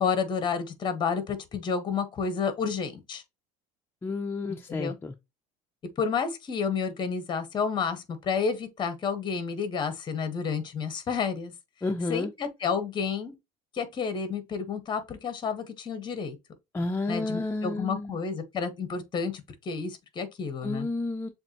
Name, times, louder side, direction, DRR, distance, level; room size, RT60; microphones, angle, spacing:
voice 1, 0.0-3.2 4.5-4.9 6.0-11.5 12.1-13.3 13.7-16.4 17.1-20.9, left 6 dB, 30° left, 1.1 m, -30 dB
voice 2, 4.0-5.1 11.8-12.3 16.7-18.2 20.6-21.3, left 3 dB, 15° left, 0.5 m, -31 dB
7.0 x 2.6 x 2.8 m
cardioid pair, 135°, 15 cm